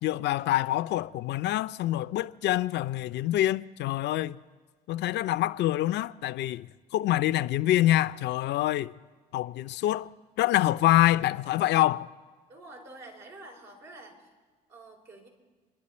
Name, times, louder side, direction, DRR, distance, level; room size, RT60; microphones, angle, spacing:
voice 1, 0.0-4.4 4.9-8.9 9.3-10.1 10.4-12.1, left 14 dB, 70° left, 0.5 m, -26 dB
voice 2, 12.5-14.3 14.7-15.3, right 2 dB, 70° right, 4.5 m, -48 dB
27.0 x 11.0 x 4.3 m
hypercardioid pair, 55°, 19 cm